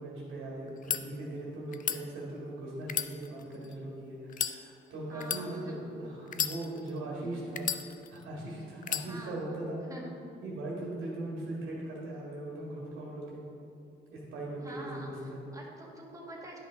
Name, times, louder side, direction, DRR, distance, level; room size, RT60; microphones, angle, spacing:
voice 1, 0.0-7.7 8.1-9.8 10.4-13.4 14.1-15.4, right 1 dB, 85° right, -4 dB, 1.8 m, -39 dB
sound 1, 0.7-1.0 1.7-2.0 2.8-3.7 4.3-4.6 5.2-5.4 6.3-7.0 7.6-8.2 8.8-9.1, left 8 dB, 40° left, 0.4 m, -33 dB
voice 2, 5.1-5.8 7.2-7.5 9.0-9.4 9.9-10.1 14.6-16.6, right 1 dB, 15° right, -2 dB, 1.6 m, -47 dB
10.5 x 5.4 x 3.6 m, 2.6 s
cardioid pair, 90°, 20 cm